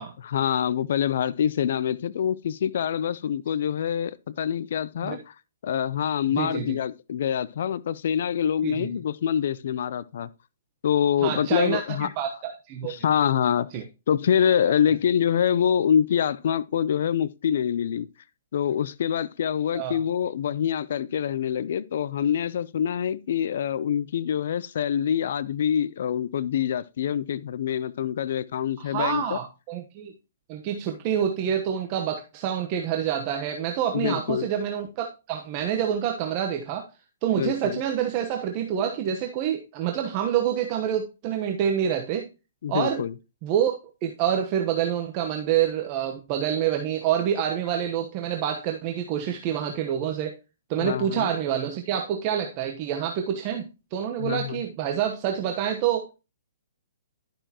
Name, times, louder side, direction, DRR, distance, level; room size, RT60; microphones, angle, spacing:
voice 1, 0.2-5.3 5.6-10.3 10.8-12.1 12.8-13.7 14.1-18.1 18.5-29.4 33.9-34.5 37.3-37.8 42.6-43.1 50.8-51.3 54.2-54.6, left 9 dB, 60° left, 0.5 m, -25 dB
voice 2, 6.4-6.8 8.6-8.9 11.2-12.9 13.7-13.8 19.7-20.0 28.8-30.1 30.5-36.9 37.2-42.3 42.7-43.0 43.4-43.8 44.0-50.4 50.7-56.1, right 9 dB, 35° right, 1.0 m, -27 dB
11.5 x 6.6 x 2.9 m
hypercardioid pair, 145°, 0 cm